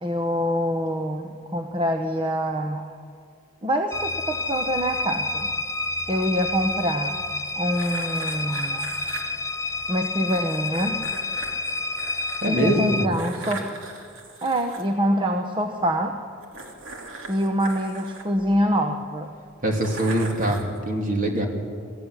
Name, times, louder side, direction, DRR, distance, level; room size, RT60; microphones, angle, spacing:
voice 1, 0.0-3.0 3.6-5.5 6.1-7.2 7.6-8.9 9.9-11.0 12.5-13.7 14.4-16.2 17.3-19.4, equal, 25° right, 5 dB, 1.0 m, -25 dB
sound 1, 3.9-13.1, left 2 dB, 15° left, 0.4 m, -29 dB
sound 2, 7.7-9.2 10.3-12.5 13.1-14.8 16.4-18.8 19.7-20.8, right 3 dB, 70° right, 3.0 m, -39 dB
voice 2, 12.4-13.1 19.6-21.5, right 1 dB, 40° right, 1 dB, 3.0 m, -23 dB
21.5 x 14.5 x 9.8 m, 2.3 s
head